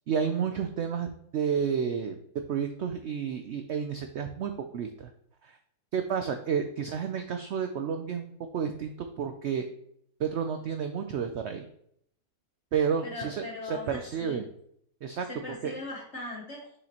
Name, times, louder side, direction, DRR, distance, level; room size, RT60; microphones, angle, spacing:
voice 1, 0.1-2.1 2.5-5.1 5.4-5.6 5.9-9.7 10.2-11.7 12.7-14.4 15.0-15.3 15.6-15.7, right 7 dB, 85° right, 6 dB, 0.6 m, -31 dB
voice 2, 13.0-14.4 15.3-16.7, left 2 dB, 45° left, -3 dB, 1.4 m, -39 dB
6.7 x 5.0 x 2.8 m, 0.69 s
omnidirectional pair, 1.7 m